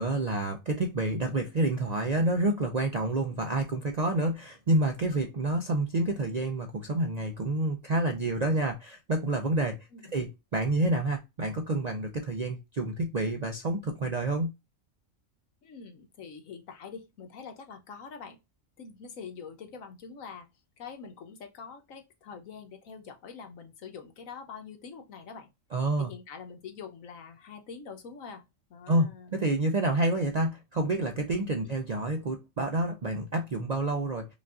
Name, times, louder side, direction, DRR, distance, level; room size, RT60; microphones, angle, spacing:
voice 1, 0.0-14.5 25.7-26.1 28.9-34.3, right 2 dB, 60° right, 0.4 m, -28 dB
voice 2, 15.6-18.4 18.8-20.5 20.8-25.5 26.0-28.4 28.7-29.4 31.6-31.7, left 6 dB, 85° left, 1.3 m, -45 dB
5.2 x 2.5 x 2.4 m
omnidirectional pair, 1.4 m